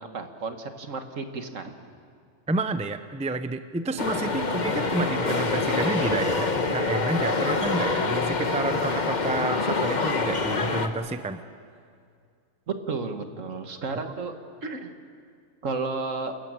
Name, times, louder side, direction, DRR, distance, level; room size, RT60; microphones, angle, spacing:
voice 1, 0.0-1.7 12.7-14.3 14.6-15.0 15.6-16.3, right 4 dB, 65° right, 6 dB, 1.9 m, -32 dB
voice 2, 2.5-11.4, right 2 dB, 5° right, 10 dB, 0.5 m, -30 dB
sound 1, 4.0-10.9, left 3 dB, 35° left, 1.3 m, -26 dB
29.5 x 14.5 x 8.8 m, 2.2 s
omnidirectional pair, 1.4 m